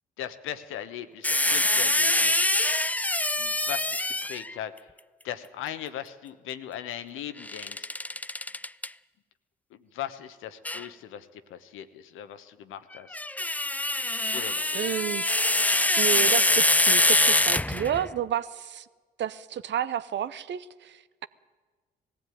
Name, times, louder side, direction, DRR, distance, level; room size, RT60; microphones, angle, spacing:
voice 1, 0.2-2.4 3.4-4.7 5.2-7.9 9.7-13.2 14.3-14.8, left 10 dB, 75° left, 1.1 m, -39 dB
sound 1, 1.2-4.5 7.4-8.9 10.6-10.9 12.9-18.1, left 1 dB, 5° left, 0.5 m, -24 dB
voice 2, 14.7-15.2 15.7-18.9 19.2-21.3, right 10 dB, 60° right, 0.8 m, -31 dB
18.5 x 15.5 x 9.3 m
hypercardioid pair, 45°, 21 cm